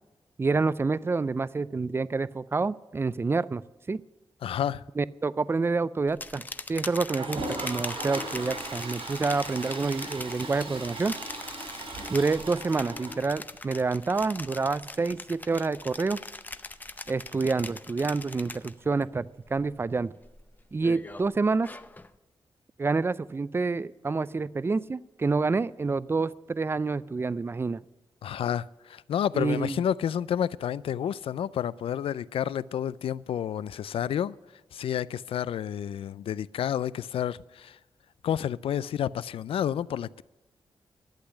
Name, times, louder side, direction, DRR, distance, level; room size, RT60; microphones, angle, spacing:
voice 1, 0.4-3.6 3.9-4.0 5.0-6.4 6.7-11.1 12.1-16.2 17.1-20.1 20.7-21.7 22.8-27.8 29.3-29.8, right 4 dB, 25° right, 0.4 m, -28 dB
voice 2, 4.4-4.8 28.2-34.3 34.7-37.8 38.2-40.2, left 9 dB, 85° left, 0.4 m, -30 dB
sound 1, 6.1-19.0 19.4-19.8 20.2-22.1, left 2 dB, 20° left, 0.6 m, -41 dB
Toilet flush, 7.0-13.7 14.1-14.2 14.4-14.5 14.7-14.8 17.4-17.5 18.8-18.9, right 2 dB, 85° right, 4.4 m, -38 dB
12.0 x 8.1 x 9.8 m
cardioid pair, 90°, 9 cm